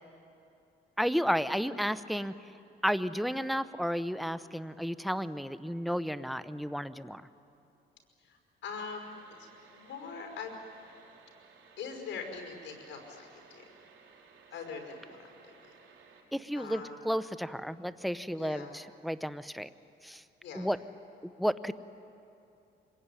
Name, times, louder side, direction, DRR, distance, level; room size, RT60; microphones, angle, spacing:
voice 1, 1.0-2.3 2.8-7.3 16.3-19.7 20.0-20.2 20.5-20.8 21.2-21.7, equal, ahead, 13 dB, 0.9 m, -32 dB
voice 2, 8.2-10.5 11.8-13.6 14.5-15.3 16.6-17.0 18.4-18.8 20.4-20.7, left 5 dB, 70° left, 4 dB, 5.5 m, -43 dB
sound 1, 8.9-16.2, right 5 dB, 75° right, 5.5 m, -58 dB
25.0 x 22.0 x 9.9 m, 2.7 s
cardioid pair, 90°, 20 cm